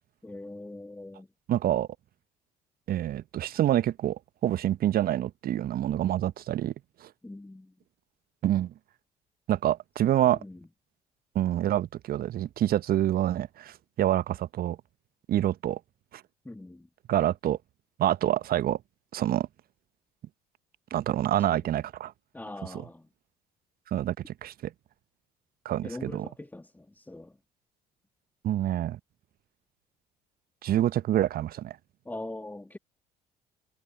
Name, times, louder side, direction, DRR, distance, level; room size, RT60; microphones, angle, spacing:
voice 1, 0.2-1.3 7.2-7.8 10.0-10.7 16.4-16.9 21.4-21.6 22.3-23.1 25.8-27.4 32.0-32.8, left 2 dB, 10° left, 2.0 m, -42 dB
voice 2, 1.5-1.9 2.9-6.7 7.0-7.1 8.4-8.7 9.5-10.4 11.3-14.8 15.3-15.8 17.1-17.6 18.0-18.8 19.1-19.5 20.9-22.1 23.9-24.7 25.6-26.2 28.4-29.0 30.6-31.8, right 12 dB, 50° right, 1.3 m, -27 dB
figure-of-eight pair, 50°, 20 cm